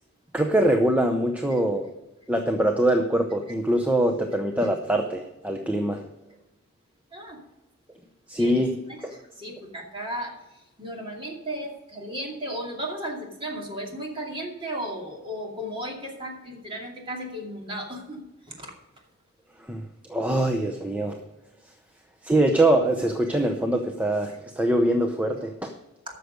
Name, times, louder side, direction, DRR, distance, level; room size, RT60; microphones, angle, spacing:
voice 1, 0.3-1.9 2.3-6.0 8.3-8.7 9.0-9.1 19.6-19.8 20.1-21.2 22.2-25.7, right 1 dB, 5° right, 4 dB, 0.6 m, -23 dB
voice 2, 7.1-7.4 8.4-10.4 10.8-18.7, equal, 25° right, 0 dB, 2.5 m, -35 dB
13.0 x 6.7 x 5.1 m, 0.99 s
head